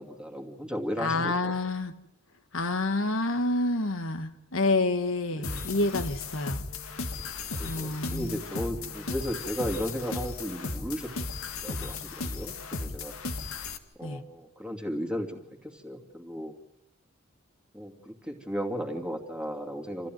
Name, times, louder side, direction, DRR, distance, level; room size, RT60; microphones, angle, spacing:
voice 1, 0.0-1.6 5.3-5.7 7.5-11.1 11.6-13.1 14.0-16.5 17.7-20.1, equal, 5° right, 4 dB, 2.6 m, -35 dB
voice 2, 1.0-1.9 2.5-6.6 7.6-8.4 14.0-14.2, left 2 dB, 70° left, 8 dB, 1.5 m, -28 dB
sound 1, 5.4-13.8, left 3 dB, 90° left, 1.9 m, -36 dB
27.5 x 15.0 x 9.4 m, 0.84 s
head